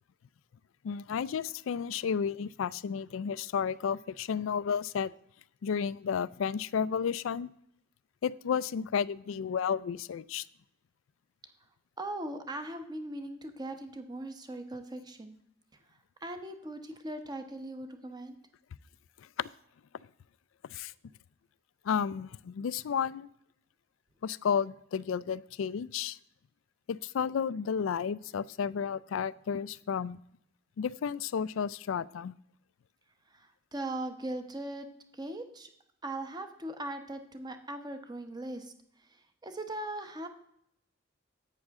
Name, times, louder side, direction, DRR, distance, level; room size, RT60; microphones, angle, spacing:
voice 1, 0.8-5.1 5.6-7.5 8.2-10.5 19.4-19.5 20.7-20.9 21.8-23.3 24.2-26.2 26.9-30.2 30.8-32.4, left 7 dB, 80° left, 19 dB, 0.4 m, -32 dB
voice 2, 12.0-15.4 16.2-18.4 33.3-34.9 35.1-35.7 36.0-38.7 39.4-40.3, right 1 dB, 20° right, 7 dB, 1.0 m, -39 dB
11.0 x 8.4 x 3.6 m, 0.72 s
head